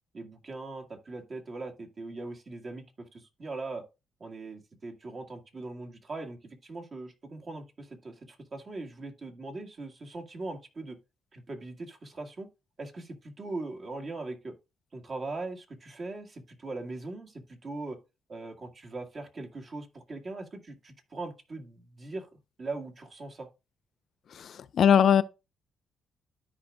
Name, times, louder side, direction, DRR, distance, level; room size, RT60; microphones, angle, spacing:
voice 1, 0.1-3.8 4.2-11.0 11.3-12.5 12.8-14.5 14.9-18.0 18.3-22.3 22.6-23.5, right 2 dB, 40° right, 1.8 m, -40 dB
voice 2, 24.3-25.2, left 8 dB, 60° left, 0.5 m, -21 dB
13.0 x 5.0 x 2.3 m
cardioid pair, 90°, 0 cm